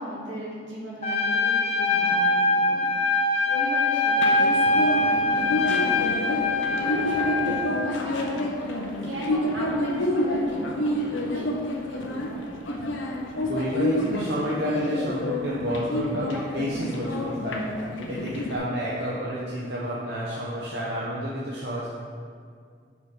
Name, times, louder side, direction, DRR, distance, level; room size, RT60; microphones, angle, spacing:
voice 1, 0.0-2.8 3.4-8.7 9.0-12.5, equal, 80° right, -5 dB, 1.7 m, -36 dB
Trumpet, 1.0-7.7, left 2 dB, 35° left, 0.5 m, -23 dB
sound 1, 4.2-18.6, left 1 dB, 80° left, 0.7 m, -29 dB
voice 2, 13.5-17.6 18.1-21.9, equal, 60° right, -6 dB, 0.8 m, -30 dB
5.1 x 5.1 x 4.7 m, 2.1 s
head